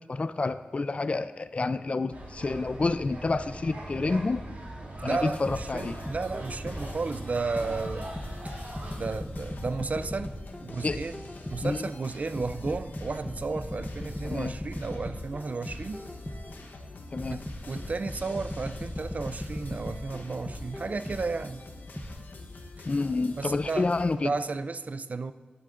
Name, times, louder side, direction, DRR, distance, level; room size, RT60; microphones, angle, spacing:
voice 1, 0.1-4.4 5.0-6.0 10.8-11.0 11.6-11.8 14.2-14.5 17.1-17.4 22.9-24.3, left 3 dB, 40° left, 0.3 m, -29 dB
sound 1, 2.1-8.9, right 1 dB, 65° right, 2.3 m, -41 dB
voice 2, 5.0-8.1 8.4-8.6 8.9-10.4 10.6-11.2 11.5-16.1 17.3-21.7 23.4-23.9 24.2-25.3, right 4 dB, 50° right, 0.3 m, -33 dB
sound 2, 5.2-24.2, left 2 dB, 80° left, 0.9 m, -46 dB
sound 3, 5.5-7.0 7.6-11.8 12.4-16.6 17.2-21.4 22.0-22.1, left 1 dB, 10° left, 0.8 m, -38 dB
12.0 x 11.0 x 2.5 m
wide cardioid pair, 100°, 3 cm